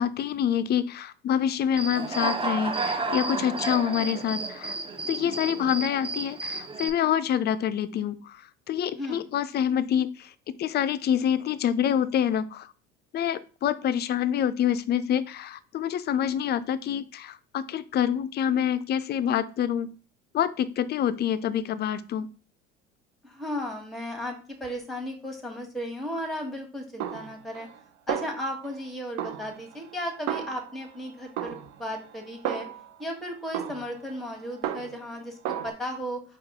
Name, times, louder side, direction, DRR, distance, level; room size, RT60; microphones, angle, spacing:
voice 1, 0.0-4.8 5.1-10.3 10.6-12.7 13.1-19.9 20.3-22.3, left 9 dB, 35° left, 15 dB, 0.4 m, -26 dB
Human voice / Cricket, 1.7-6.9, right 3 dB, 20° right, 0.7 m, -31 dB
voice 2, 8.9-9.2 23.2-27.7 28.1-32.7 33.0-36.2, equal, ahead, 2 dB, 1.3 m, -35 dB
Snare drum, 27.0-27.8 28.1-28.8 29.2-31.0 31.4-33.0 33.5-35.1 35.4-35.7, right 10 dB, 65° right, 0.6 m, -34 dB
4.6 x 2.4 x 3.6 m, 0.37 s
hypercardioid pair, 75°, 30 cm